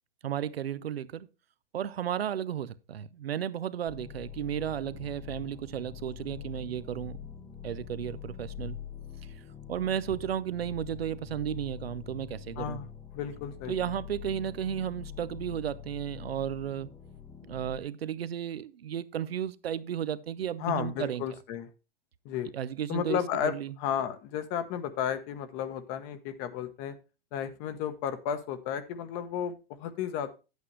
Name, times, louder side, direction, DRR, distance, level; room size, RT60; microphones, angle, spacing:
voice 1, 0.2-1.3 1.7-7.2 7.6-8.8 9.7-12.8 13.7-16.9 17.5-21.2 22.5-23.7, right 9 dB, 85° right, 0.7 m, -34 dB
sound 1, 3.9-17.8, left 9 dB, 10° left, 0.8 m, -44 dB
voice 2, 12.6-12.9 13.1-13.7 20.6-21.7 22.2-22.5 22.9-27.0 27.3-30.3, left 9 dB, 35° left, 1.0 m, -33 dB
9.7 x 8.3 x 3.1 m
hypercardioid pair, 130°, 29 cm